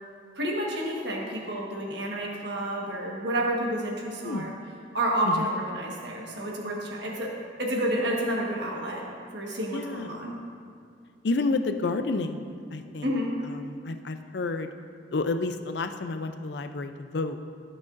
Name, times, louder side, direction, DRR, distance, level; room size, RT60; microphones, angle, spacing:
voice 1, 0.3-4.5 4.9-7.3 7.6-9.0 9.3-10.3 13.0-13.3, right 1 dB, 60° right, -2 dB, 1.4 m, -29 dB
voice 2, 4.2-4.6 5.3-5.5 9.7-10.2 11.2-13.1 13.4-14.7 15.1-17.4, left 3 dB, 60° left, 8 dB, 0.5 m, -30 dB
15.5 x 6.2 x 2.6 m, 2.3 s
head